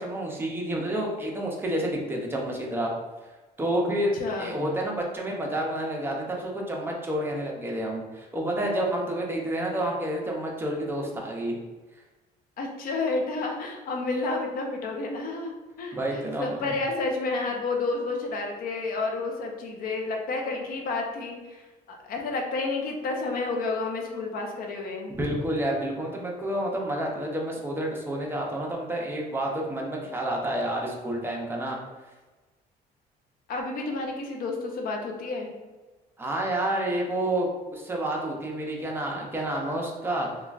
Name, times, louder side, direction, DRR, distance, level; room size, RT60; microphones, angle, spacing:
voice 1, 0.0-2.9 3.6-11.6 15.9-16.7 25.1-31.8 36.2-40.3, right 1 dB, 15° right, -1 dB, 0.6 m, -29 dB
voice 2, 4.1-4.5 12.6-15.5 15.8-25.1 33.5-35.5, left 3 dB, 60° left, 2 dB, 0.6 m, -30 dB
3.0 x 2.3 x 2.4 m, 1.2 s
cardioid pair, 110°, 17 cm